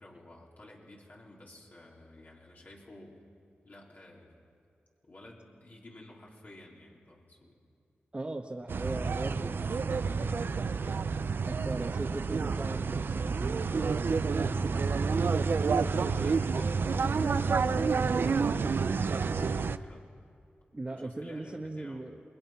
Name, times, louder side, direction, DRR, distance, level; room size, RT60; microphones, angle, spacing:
voice 1, 0.0-3.2 3.6-4.4 5.0-7.6 9.5-9.6 11.5-11.7 15.8-18.2 18.9-20.0 20.9-22.0, left 1 dB, 50° left, -3 dB, 4.0 m, -53 dB
voice 2, 8.1-10.5 11.4-15.1 16.3-16.8 20.7-22.2, right 2 dB, 30° right, -1 dB, 1.4 m, -40 dB
sound 1, 8.7-19.8, right 5 dB, 65° right, 0.6 m, -29 dB
27.5 x 20.5 x 5.9 m, 2.5 s
wide cardioid pair, 70°, 4 cm